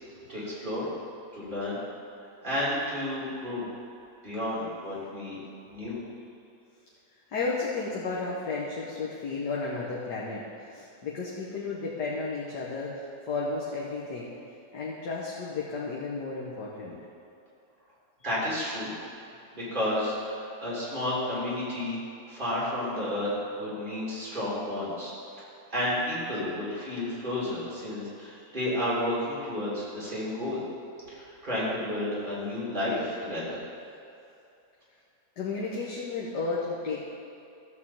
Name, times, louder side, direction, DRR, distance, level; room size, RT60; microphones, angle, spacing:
voice 1, 0.3-0.9 1.3-1.8 2.4-3.7 4.2-5.4 5.7-6.0 18.2-18.9 19.5-22.0 22.3-25.1 25.7-30.6 31.1-33.6, left 1 dB, 30° right, -8 dB, 3.2 m, -31 dB
voice 2, 7.3-14.3 14.7-17.0 35.4-37.0, left 3 dB, 90° left, -4 dB, 1.7 m, -33 dB
13.0 x 4.5 x 7.2 m, 2.6 s
omnidirectional pair, 1.7 m